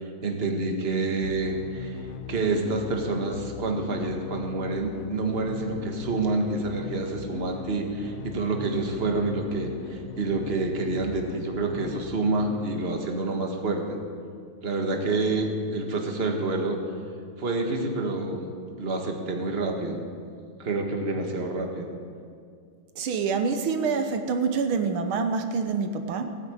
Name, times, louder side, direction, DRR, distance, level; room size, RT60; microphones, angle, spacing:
voice 1, 0.2-2.0 2.3-14.0 14.6-16.8 17.4-18.5 18.8-20.0 20.6-21.9, right 3 dB, 30° right, 2 dB, 1.7 m, -28 dB
sound 1, 1.2-13.1, left 6 dB, 85° left, 1.7 m, -40 dB
voice 2, 23.0-26.4, right 5 dB, 80° right, 7 dB, 1.8 m, -26 dB
17.0 x 9.3 x 8.4 m, 2.2 s
omnidirectional pair, 2.3 m